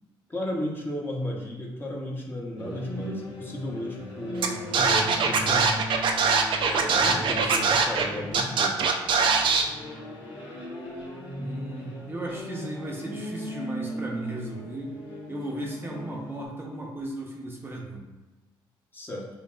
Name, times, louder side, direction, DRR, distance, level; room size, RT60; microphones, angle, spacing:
voice 1, 0.3-5.7 6.7-8.8 18.9-19.3, equal, 20° left, -3 dB, 0.9 m, -34 dB
sound 1, 2.6-16.5, equal, 85° left, 1.1 m, -38 dB
Scratching (performance technique), 4.4-4.5 4.7-8.0 8.3-9.6, right 5 dB, 60° right, 0.5 m, -22 dB
voice 2, 6.8-7.6 11.3-15.0 15.3-18.0, right 1 dB, 25° right, -2 dB, 0.7 m, -36 dB
5.5 x 2.3 x 2.4 m, 1.1 s
cardioid pair, 80°, 9 cm